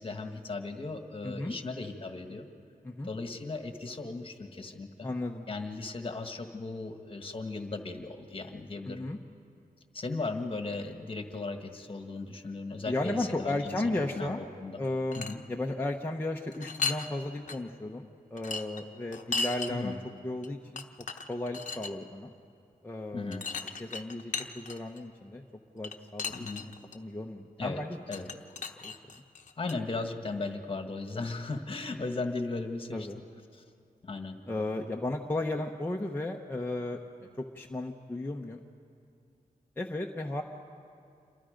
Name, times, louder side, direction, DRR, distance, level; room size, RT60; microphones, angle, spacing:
voice 1, 0.0-2.4 3.0-5.1 5.5-9.1 9.9-13.8 14.1-14.8 15.2-15.4 19.7-20.0 23.1-23.4 26.3-26.7 27.6-27.8 28.1-28.3 29.6-33.1 33.5-33.6 34.0-34.4, left 3 dB, 35° left, 5 dB, 1.6 m, -37 dB
voice 2, 1.2-1.5 2.8-3.1 5.0-5.5 8.9-9.2 12.8-14.4 14.8-20.8 21.3-22.3 22.8-23.5 23.8-25.4 25.7-28.0 28.8-28.9 32.9-33.2 34.5-37.0 37.4-38.6 39.8-40.4, left 2 dB, 15° left, 0 dB, 0.9 m, -34 dB
sound 1, 14.8-15.4 16.5-17.1 17.5-17.6 18.4-19.7 20.4-20.5 20.8-21.9 23.3-25.0 25.8-27.0 28.1-29.8, left 4 dB, 55° left, 0.9 m, -36 dB
28.0 x 23.0 x 5.2 m, 2.4 s
wide cardioid pair, 110°, 15 cm